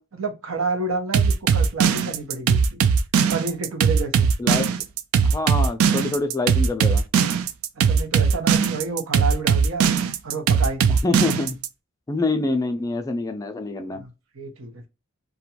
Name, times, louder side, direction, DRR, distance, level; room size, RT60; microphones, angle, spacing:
voice 1, 0.1-2.8 3.3-4.3 7.8-9.9 10.2-11.0 13.9-14.9, right 3 dB, 70° right, 0.8 m, -29 dB
sound 1, 1.1-11.7, right 6 dB, 85° right, 0.3 m, -19 dB
voice 2, 5.2-7.0 10.9-11.6 12.1-14.0, left 3 dB, 15° left, 0.3 m, -26 dB
2.5 x 2.2 x 2.9 m
head